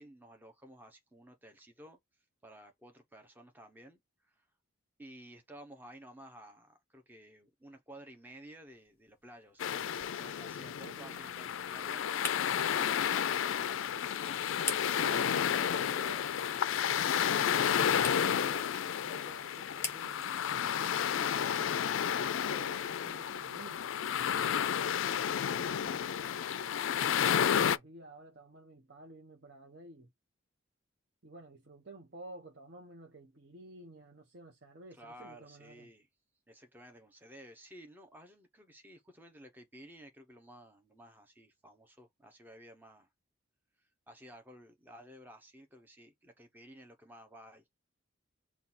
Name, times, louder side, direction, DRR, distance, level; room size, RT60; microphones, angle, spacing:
voice 1, 0.0-2.0 2.4-4.5 5.0-9.8 10.1-12.0 12.8-14.2 34.9-36.1 36.5-43.1 43.8-47.6, right 1 dB, 10° right, 0.7 m, -54 dB
sound 1, 8.7-23.5, left 3 dB, 10° left, 1.3 m, -48 dB
sound 2, 9.6-27.8, left 8 dB, 70° left, 0.3 m, -31 dB
voice 2, 10.8-11.3 12.7-13.0 14.8-20.5 20.8-26.1 27.4-30.1 31.2-35.9, right 2 dB, 55° right, 0.8 m, -52 dB
5.6 x 2.3 x 4.1 m
head